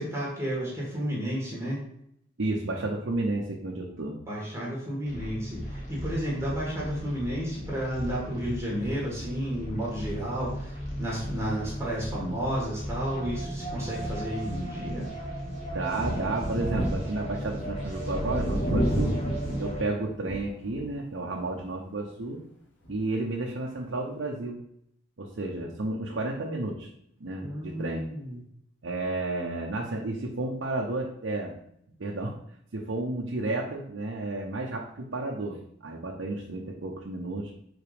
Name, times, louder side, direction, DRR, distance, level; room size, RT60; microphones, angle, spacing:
voice 1, 0.0-1.8 4.3-15.1 27.4-28.4, equal, 15° right, -5 dB, 1.6 m, -32 dB
voice 2, 2.4-4.2 15.7-19.1 19.6-22.4 22.9-24.6 25.2-26.9 27.2-28.0 28.8-31.5 32.0-32.4 32.7-37.5, right 2 dB, 90° right, -1 dB, 0.8 m, -32 dB
sound 1, 5.0-19.8, equal, 35° left, 1.9 m, -36 dB
Thunder, 15.9-21.0 21.4-21.5 22.9-23.0, equal, 75° left, 1.3 m, -31 dB
5.0 x 4.0 x 4.9 m, 0.73 s
head